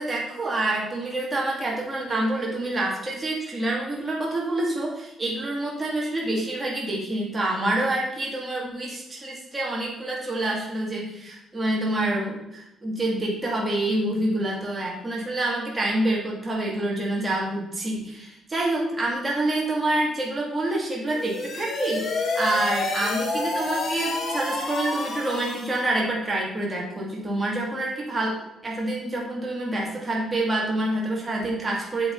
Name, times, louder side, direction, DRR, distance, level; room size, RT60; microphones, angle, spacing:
voice 1, 0.0-32.1, right 1 dB, 20° right, -3 dB, 2.8 m, -27 dB
sound 1, 21.1-25.9, left 3 dB, 55° left, 2.2 m, -29 dB
8.0 x 7.8 x 4.2 m, 0.86 s
cardioid pair, 90°, 0 cm